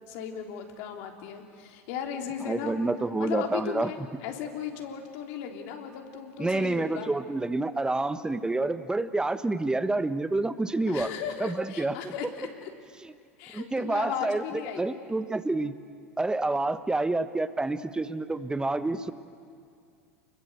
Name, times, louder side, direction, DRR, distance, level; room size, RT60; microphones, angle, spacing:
voice 1, 0.1-2.9 3.2-7.1 10.9-12.7 13.4-14.9, left 8 dB, 60° left, 3 dB, 3.5 m, -36 dB
voice 2, 2.5-3.9 6.4-11.1 11.4-12.1 13.5-14.4 14.8-15.7 16.2-19.1, right 2 dB, 10° right, 12 dB, 1.3 m, -28 dB
29.5 x 21.5 x 8.2 m, 2.3 s
hypercardioid pair, 85°, 8 cm